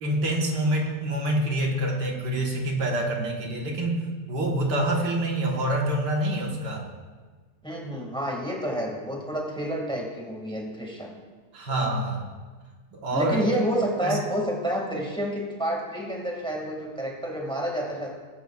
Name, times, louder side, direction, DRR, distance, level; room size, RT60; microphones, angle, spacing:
voice 1, 0.0-4.0 4.3-6.9 11.5-12.3 12.9-13.5 14.0-14.2, right 1 dB, 85° right, 0 dB, 2.1 m, -26 dB
voice 2, 7.6-11.1 13.1-18.1, equal, 5° left, -1 dB, 1.9 m, -29 dB
19.5 x 9.4 x 2.4 m, 1.4 s
omnidirectional pair, 1.8 m